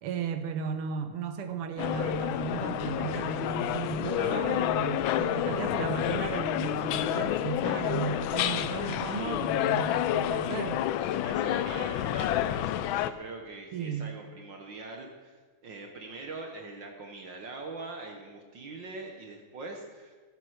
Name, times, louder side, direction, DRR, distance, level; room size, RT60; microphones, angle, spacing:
voice 1, 0.0-10.8 13.7-14.2, right 7 dB, 85° right, 8 dB, 2.0 m, -35 dB
sound 1, 1.8-13.1, left 12 dB, 75° left, 1.3 m, -29 dB
voice 2, 11.2-20.2, right 3 dB, 60° right, 2 dB, 1.9 m, -43 dB
17.0 x 9.2 x 6.5 m, 1.4 s
omnidirectional pair, 2.4 m